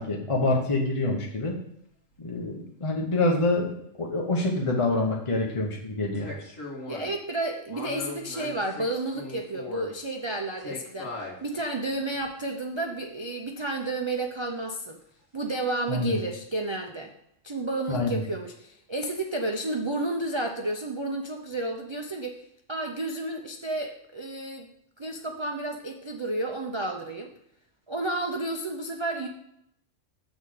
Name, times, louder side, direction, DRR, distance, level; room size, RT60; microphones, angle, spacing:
voice 1, 0.0-1.6 2.2-6.3 15.9-16.2 17.9-18.2, left 2 dB, 30° left, -1 dB, 0.9 m, -26 dB
sound 1, 1.2-1.3 6.1-7.1 7.7-9.9 10.6-11.4 12.2-12.3, left 2 dB, 80° left, 2.3 m, -39 dB
voice 2, 6.9-11.1 11.4-15.0 15.3-17.1 17.4-22.4 22.7-24.7 25.0-27.3 27.9-29.3, right 2 dB, 40° right, 2 dB, 0.4 m, -31 dB
7.0 x 4.1 x 6.4 m, 0.76 s
omnidirectional pair, 1.3 m